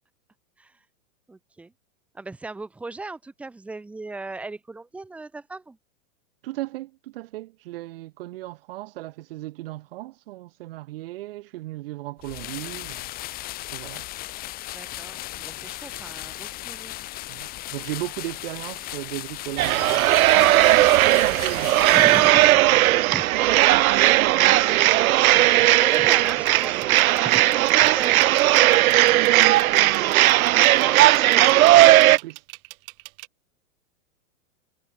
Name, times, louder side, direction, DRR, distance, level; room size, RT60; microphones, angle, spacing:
voice 1, 1.3-1.7 2.1-5.8 14.7-16.9 21.9-23.3 25.8-28.8 30.8-31.8, right 3 dB, 5° right, 1.2 m, -37 dB
voice 2, 6.4-13.1 13.7-14.0 17.3-21.8 23.3-25.7 29.2-30.1 30.4-30.5 32.1-32.4, right 17 dB, 45° right, 2.6 m, -35 dB
sound 1, 12.2-22.6, left 16 dB, 20° left, 3.0 m, -36 dB
sound 2, 19.6-32.2, right 15 dB, 80° right, 0.6 m, -17 dB
sound 3, 25.9-33.3, right 33 dB, 25° right, 2.0 m, -41 dB
supercardioid pair, 170°, 41 cm